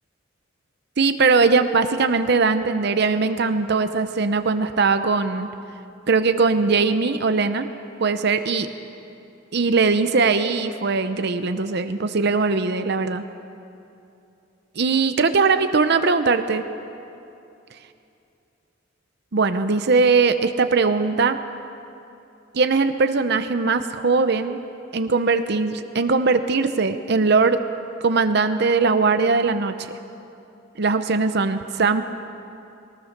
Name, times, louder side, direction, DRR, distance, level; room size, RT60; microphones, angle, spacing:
voice 1, 1.0-5.5 6.1-7.7 8.0-8.7 9.5-13.2 14.8-16.6 19.3-21.4 22.5-24.6 24.9-27.6 28.0-29.9 30.8-32.0, right 4 dB, 60° right, 9 dB, 0.7 m, -20 dB
21.0 x 19.0 x 6.6 m, 2.7 s
head